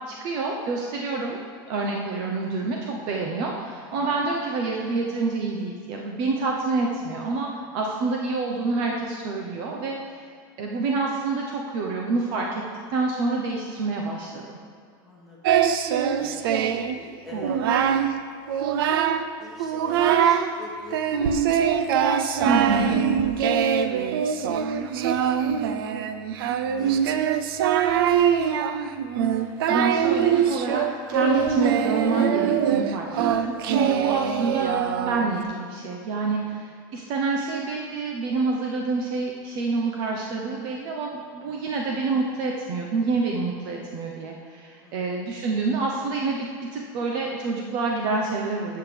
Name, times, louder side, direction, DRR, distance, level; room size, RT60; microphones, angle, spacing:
voice 1, 0.1-1.4 1.7-10.3 10.6-12.6 12.9-14.4 22.4-23.0 29.4-34.8 35.0-48.8, right 3 dB, 40° right, 0 dB, 0.8 m, -27 dB
voice 2, 15.0-15.5 16.2-18.1 19.1-21.1 21.5-22.0 22.3-22.8 23.4-25.8 26.4-28.6 34.0-34.3 36.3-36.6 41.4-41.7 44.8-45.2, left 2 dB, ahead, -7 dB, 1.9 m, -46 dB
Singing, 15.4-16.9 17.3-18.1 18.5-19.3 19.6-20.5 20.9-35.4, right 8 dB, 75° right, 0.6 m, -23 dB
12.0 x 8.0 x 3.4 m, 2.3 s
supercardioid pair, 175°, 12 cm